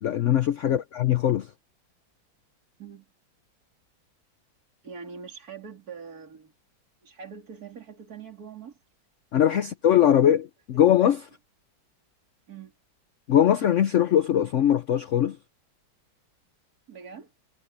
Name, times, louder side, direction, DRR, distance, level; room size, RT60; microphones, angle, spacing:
voice 1, 0.0-1.5 9.3-11.2 13.3-15.4, left 10 dB, 70° left, 0.7 m, -21 dB
voice 2, 4.8-6.5 7.0-8.8 9.7-9.8 12.5-12.7 16.9-17.3, right 6 dB, 50° right, 3.5 m, -43 dB
omnidirectional pair, 2.1 m